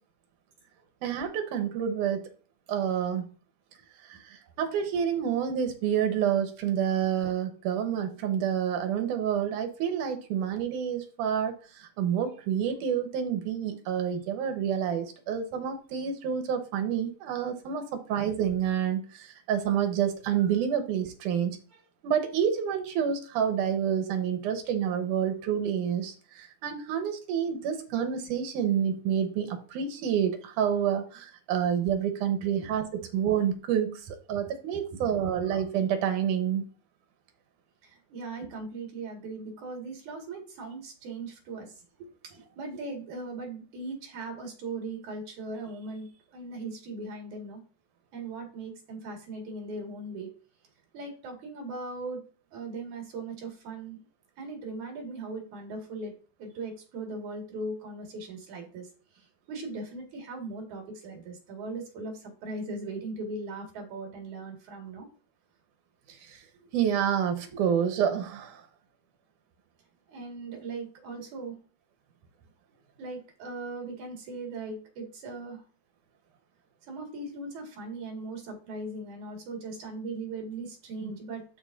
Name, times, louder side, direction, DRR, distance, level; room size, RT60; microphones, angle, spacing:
voice 1, 1.0-2.3 2.7-3.3 4.1-21.6 22.0-32.9 33.1-36.6 66.2-66.4 66.7-68.6 81.0-81.1, right 8 dB, 90° right, 6 dB, 2.6 m, -28 dB
voice 2, 34.7-35.1 37.8-47.6 48.1-50.3 50.9-52.2 52.5-54.0 54.4-65.1 70.1-71.6 73.0-75.6 76.8-81.5, right 3 dB, 70° right, 1 dB, 3.4 m, -39 dB
12.0 x 4.6 x 2.6 m, 0.38 s
omnidirectional pair, 3.5 m